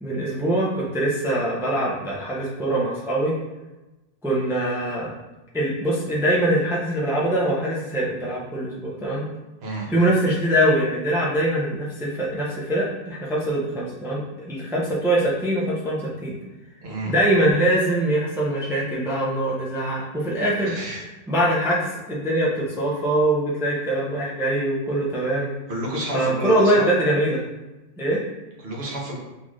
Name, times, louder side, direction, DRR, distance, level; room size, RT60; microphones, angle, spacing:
voice 1, 0.0-3.3 4.2-5.1 5.5-9.3 9.9-16.4 17.1-20.7 21.3-25.5 26.1-27.4 28.0-28.2, right 1 dB, 5° right, -5 dB, 0.5 m, -23 dB
voice 2, 16.8-17.1 20.6-21.0 25.7-26.9 28.6-29.2, right 1 dB, 70° right, -2 dB, 1.1 m, -30 dB
4.0 x 2.5 x 3.1 m, 1.1 s
omnidirectional pair, 1.1 m